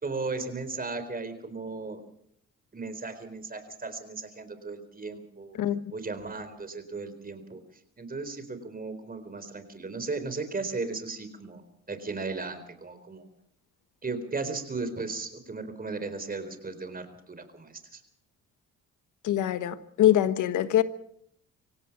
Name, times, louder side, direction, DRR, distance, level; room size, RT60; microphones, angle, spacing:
voice 1, 0.0-2.0 2.7-5.6 5.9-7.6 8.0-11.6 11.9-13.3 14.0-18.0, right 3 dB, 30° right, 4.2 m, -36 dB
voice 2, 19.2-20.8, left 12 dB, 80° left, 1.4 m, -23 dB
25.5 x 17.0 x 6.1 m
cardioid pair, 90°, 30 cm